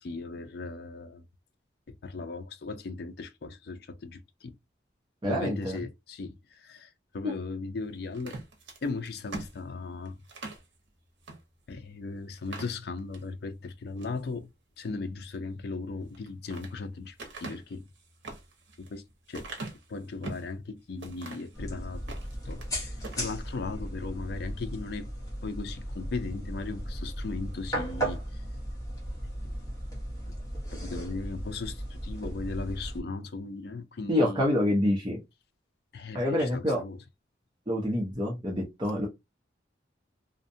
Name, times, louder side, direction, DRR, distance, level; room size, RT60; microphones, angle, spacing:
voice 1, 0.0-1.2 1.9-4.6 5.2-8.4 8.8-10.2 11.7-14.5 14.8-17.8 18.8-19.0 19.3-19.5 19.9-22.0 22.5-25.1 25.4-28.4 29.2-29.5 30.7-34.4 35.9-37.0, left 3 dB, 55° left, 0.4 m, -37 dB
voice 2, 5.2-5.8 7.2-7.3 34.1-35.2 36.1-36.8 37.7-39.1, left 1 dB, 25° right, 0.6 m, -27 dB
sound 1, 8.1-10.7 11.2-11.4 11.8-11.9 12.3-13.3 13.8-14.2 16.0-16.7 17.2-20.5 21.0-21.6 22.0-22.7 23.0-23.3, right 3 dB, 75° right, 0.7 m, -42 dB
sound 2, 21.5-33.0, equal, 15° left, 0.8 m, -36 dB
2.6 x 2.1 x 2.6 m
head